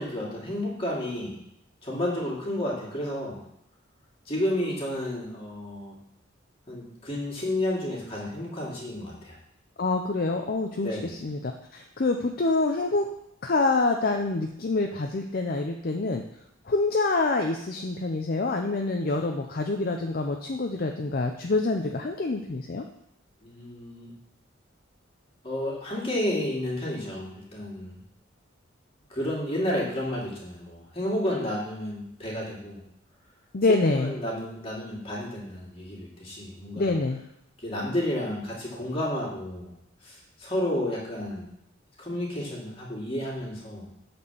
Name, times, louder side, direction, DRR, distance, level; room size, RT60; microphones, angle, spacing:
voice 1, 0.0-1.4 1.8-3.4 4.3-6.0 6.7-9.3 10.8-11.1 23.4-24.1 25.4-28.0 29.1-32.8 33.9-36.9 37.6-39.7 40.0-41.5 42.0-43.8, left 1 dB, 30° left, -5 dB, 2.7 m, -31 dB
voice 2, 9.8-13.1 13.4-16.2 16.7-22.8 33.5-34.1 36.8-37.2, left 3 dB, 50° left, 4 dB, 0.6 m, -26 dB
8.2 x 4.4 x 7.0 m, 0.77 s
head